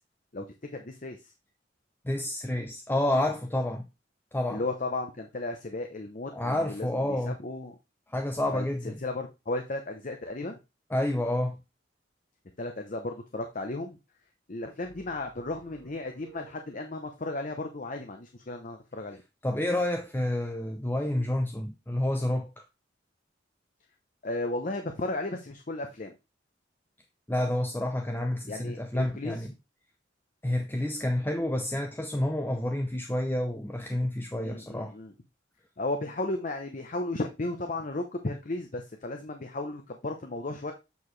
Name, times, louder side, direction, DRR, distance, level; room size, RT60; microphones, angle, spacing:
voice 1, 0.7-1.3 4.5-7.8 8.5-10.6 12.6-14.0 14.5-19.2 24.2-26.1 28.5-29.4 34.4-35.1 35.8-40.7, left 2 dB, 45° left, 0.8 m, -35 dB
voice 2, 2.0-3.9 4.3-4.6 6.3-7.4 8.1-9.0 10.9-11.6 19.4-22.5 27.3-29.5 30.4-34.9, left 1 dB, 10° left, 0.6 m, -29 dB
sound 1, 14.8-17.2, right 5 dB, 65° right, 2.0 m, -56 dB
8.0 x 4.8 x 3.2 m
head